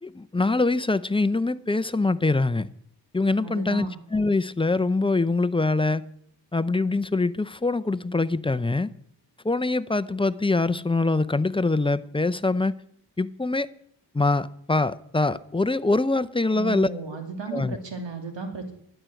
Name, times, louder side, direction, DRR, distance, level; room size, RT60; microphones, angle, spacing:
voice 1, 0.0-2.7 3.1-6.1 6.5-8.9 9.4-12.7 13.2-13.7 14.1-16.9 17.5-17.8, left 3 dB, 10° left, 0.6 m, -24 dB
voice 2, 3.4-3.9 16.5-18.7, right 4 dB, 80° right, 2.6 m, -34 dB
12.0 x 9.2 x 6.3 m
cardioid pair, 60°, 43 cm